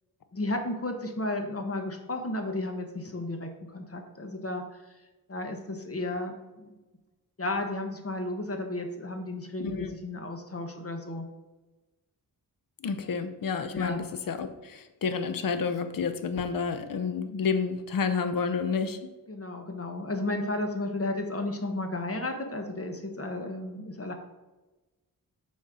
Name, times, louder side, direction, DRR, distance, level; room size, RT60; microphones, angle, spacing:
voice 1, 0.3-5.0 5.3-6.7 7.4-11.3 13.0-13.1 13.7-14.0 19.3-24.1, left 2 dB, 40° left, 4 dB, 1.3 m, -33 dB
voice 2, 9.6-10.0 12.8-19.0, left 5 dB, 60° left, 10 dB, 0.8 m, -30 dB
7.3 x 4.2 x 6.2 m, 1.1 s
cardioid pair, 75°, 37 cm